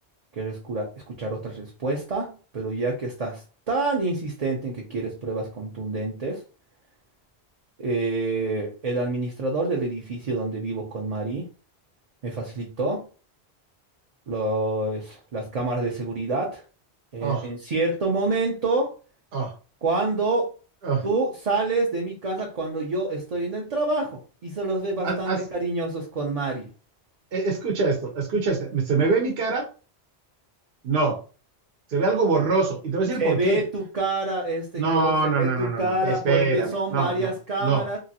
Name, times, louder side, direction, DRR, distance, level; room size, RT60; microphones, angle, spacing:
voice 1, 0.3-6.4 7.8-11.5 12.2-13.0 14.3-16.6 17.1-18.9 19.8-20.5 21.0-26.7 33.2-38.0, right 2 dB, 45° right, 0 dB, 0.6 m, -27 dB
voice 2, 25.0-25.4 27.3-29.7 30.8-31.2 31.9-33.6 34.8-37.3 37.6-37.8, right 4 dB, 65° right, 2 dB, 0.9 m, -24 dB
2.9 x 2.5 x 2.7 m, 0.36 s
omnidirectional pair, 1.1 m